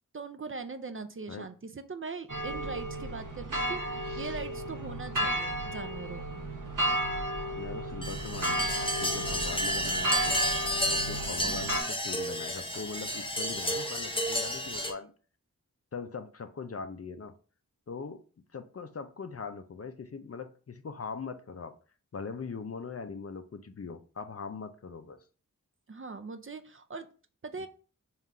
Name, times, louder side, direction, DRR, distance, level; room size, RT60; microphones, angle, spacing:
voice 1, 0.1-6.4 11.4-11.7 25.9-27.1 27.4-27.7, right 4 dB, 40° right, 0.4 m, -41 dB
sound 1, 2.3-11.8, right 1 dB, 65° right, 0.8 m, -33 dB
voice 2, 7.6-10.4 10.9-15.1 15.9-17.3 17.9-18.2 18.5-21.7 22.1-25.2 27.6-27.7, left 5 dB, 45° left, 0.4 m, -41 dB
sound 2, 8.0-14.9, equal, 15° left, 0.8 m, -31 dB
3.7 x 2.4 x 4.2 m
wide cardioid pair, 55°, 34 cm